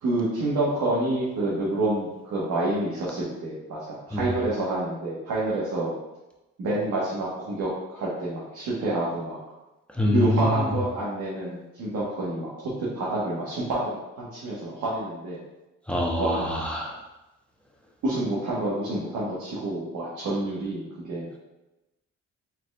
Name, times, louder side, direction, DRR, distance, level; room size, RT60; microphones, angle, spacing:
voice 1, 0.0-5.9 6.6-9.4 10.1-15.4 16.2-16.6 18.0-21.3, right 2 dB, 75° right, -7 dB, 1.4 m, -28 dB
voice 2, 10.0-10.5 15.9-17.0, left 1 dB, 5° left, -3 dB, 1.0 m, -25 dB
4.7 x 4.2 x 2.4 m, 0.99 s
cardioid pair, 90°, 30 cm